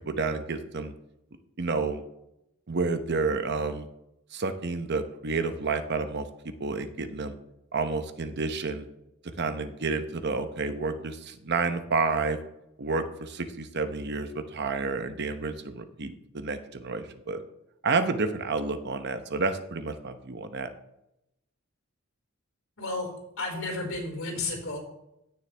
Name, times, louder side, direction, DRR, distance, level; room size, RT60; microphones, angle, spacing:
voice 1, 0.1-0.9 1.6-2.0 2.7-3.9 4.3-6.3 6.6-7.3 7.7-8.9 9.4-12.4 12.8-17.4 17.8-20.7, right 4 dB, 55° right, 9 dB, 0.9 m, -30 dB
voice 2, 23.4-24.8, left 2 dB, 80° left, 1 dB, 4.5 m, -32 dB
16.5 x 6.5 x 3.4 m, 0.84 s
head